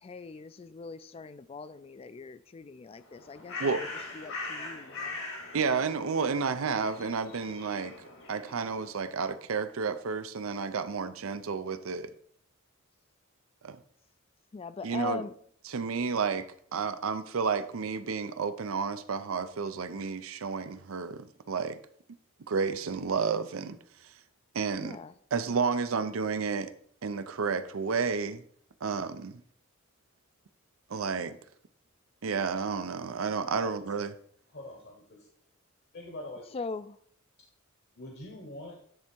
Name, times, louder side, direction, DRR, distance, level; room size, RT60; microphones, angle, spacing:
voice 1, 0.0-3.9 4.1-5.2 14.5-15.3 24.8-25.1 36.5-37.0, left 4 dB, 30° left, 0.3 m, -41 dB
Bird, 3.0-9.0, left 3 dB, 80° left, 2.1 m, -42 dB
voice 2, 5.5-8.0 8.3-12.1 13.6-13.8 14.8-15.2 15.7-21.8 22.5-23.8 24.5-25.0 25.3-26.7 27.0-28.4 28.8-29.4 30.9-31.4 32.2-34.1, right 5 dB, 80° right, 0.5 m, -31 dB
voice 3, 33.5-34.0 34.5-35.3 35.9-36.4 37.9-38.8, left 1 dB, 55° left, 1.1 m, -44 dB
10.0 x 3.5 x 4.4 m
head